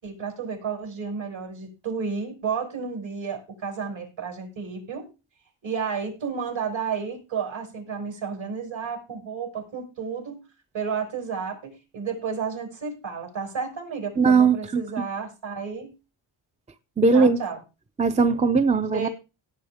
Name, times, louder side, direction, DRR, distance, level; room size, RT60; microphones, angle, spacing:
voice 1, 0.0-5.1 5.6-10.4 10.7-15.9 17.1-17.6 18.9-19.1, right 6 dB, 65° right, 6.1 m, -32 dB
voice 2, 14.2-14.8 17.0-17.4 18.0-19.1, right 4 dB, 15° right, 0.6 m, -19 dB
17.5 x 7.9 x 3.6 m
cardioid pair, 90°, 50 cm